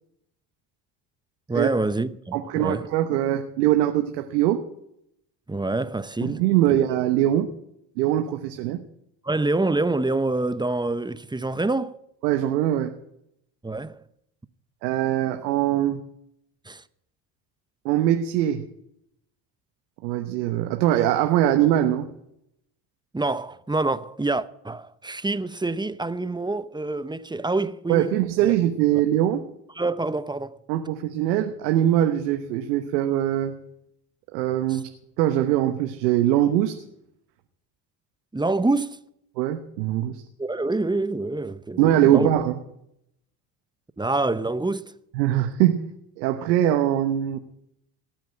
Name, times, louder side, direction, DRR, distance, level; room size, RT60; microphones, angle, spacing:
voice 1, 1.5-2.9 5.5-6.8 9.2-12.0 13.6-14.0 16.7-16.8 23.1-28.2 28.4-28.5 29.8-30.6 34.7-34.8 38.3-39.0 40.4-42.3 44.0-44.9, right 2 dB, 10° right, 0.8 m, -26 dB
voice 2, 2.3-4.6 6.2-7.5 8.0-8.8 12.2-12.9 14.8-16.0 17.8-18.6 20.0-22.1 27.9-29.4 30.7-33.5 34.3-34.9 35.2-36.8 39.4-40.2 41.8-42.6 45.1-45.8 46.2-47.4, right 12 dB, 85° right, 1.1 m, -22 dB
17.5 x 9.1 x 7.6 m
hypercardioid pair, 60°, 49 cm